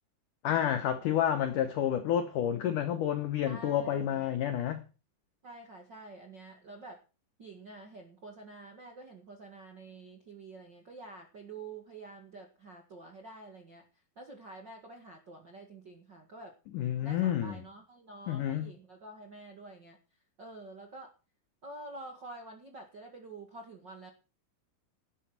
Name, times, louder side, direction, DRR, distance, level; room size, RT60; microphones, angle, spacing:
voice 1, 0.4-4.8 16.7-17.6 18.3-18.7, left 10 dB, 85° left, 1.8 m, -29 dB
voice 2, 3.4-4.2 5.4-7.0 7.4-13.8 14.1-16.6 17.0-20.0 20.4-21.1 21.6-24.1, right 2 dB, 60° right, 1.1 m, -48 dB
12.5 x 9.0 x 6.0 m
omnidirectional pair, 5.2 m